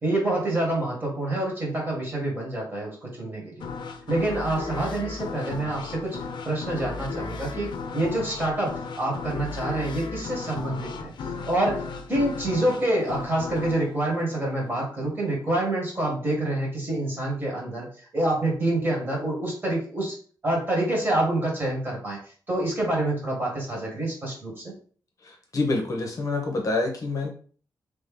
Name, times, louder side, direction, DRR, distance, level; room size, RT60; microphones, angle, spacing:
voice 1, 0.0-3.7 4.1-6.2 6.4-11.1 11.5-11.8 12.1-20.1 20.4-22.2 22.5-24.6, right 1 dB, 30° right, -3 dB, 1.7 m, -27 dB
sound 1, 3.6-15.1, left 4 dB, 80° left, 0.5 m, -36 dB
voice 2, 25.5-27.3, left 3 dB, 45° left, 2 dB, 0.7 m, -26 dB
3.2 x 2.7 x 3.6 m, 0.43 s
wide cardioid pair, 175°, 8 cm